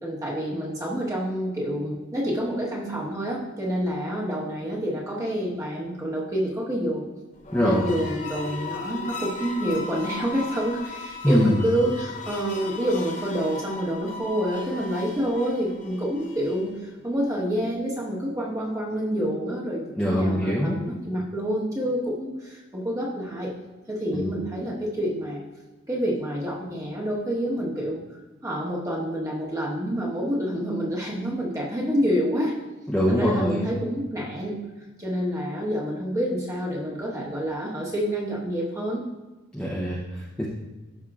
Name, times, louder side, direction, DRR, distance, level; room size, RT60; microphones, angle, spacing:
voice 1, 0.0-7.0 7.6-23.5 23.9-25.4 25.9-28.0 28.4-32.5 33.1-34.6 35.0-39.0, equal, 15° right, -4 dB, 1.3 m, -28 dB
sound 1, 7.4-16.8, left 3 dB, 35° left, 0.8 m, -37 dB
voice 2, 7.5-7.9 11.2-11.6 20.0-20.8 24.1-24.2 32.9-33.7 39.5-40.5, equal, 5° left, -7 dB, 0.7 m, -23 dB
12.0 x 5.4 x 2.4 m, 1.2 s
head